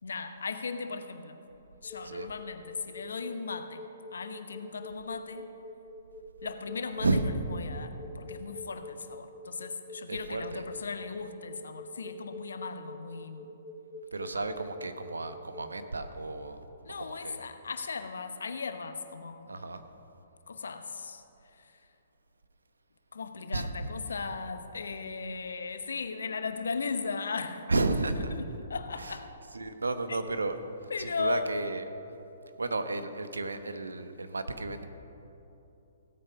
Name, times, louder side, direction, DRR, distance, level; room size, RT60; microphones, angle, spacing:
voice 1, 0.0-1.4 1.8-3.8 4.1-5.5 6.4-13.5 14.4-14.5 16.8-19.6 20.5-21.8 23.1-27.7 28.2-29.3 30.1-30.2 30.9-31.5, left 5 dB, 70° left, 9 dB, 0.9 m, -37 dB
sound 1, 1.8-15.7, left 2 dB, 20° left, 1.5 m, -45 dB
voice 2, 10.1-10.6 14.1-16.6 17.0-17.4 19.5-19.8 23.5-23.9 27.7-28.4 29.0-29.1 29.5-30.6 31.0-31.8 32.6-34.9, right 3 dB, 80° right, 9 dB, 1.0 m, -32 dB
16.5 x 8.6 x 5.7 m, 2.9 s
figure-of-eight pair, 125°, 0 cm